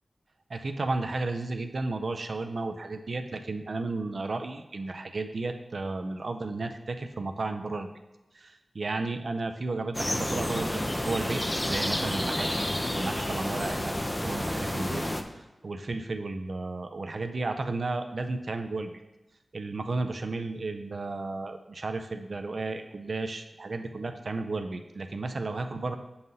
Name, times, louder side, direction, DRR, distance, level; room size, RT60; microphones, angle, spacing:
voice 1, 0.5-7.9 8.3-12.7 12.9-13.9 14.2-15.0 15.6-18.9 19.5-26.0, right 3 dB, 60° right, 6 dB, 0.4 m, -33 dB
sound 1, 9.9-15.2, left 1 dB, 15° left, 0.5 m, -30 dB
7.8 x 5.5 x 2.7 m, 1.0 s
wide cardioid pair, 100°, 0 cm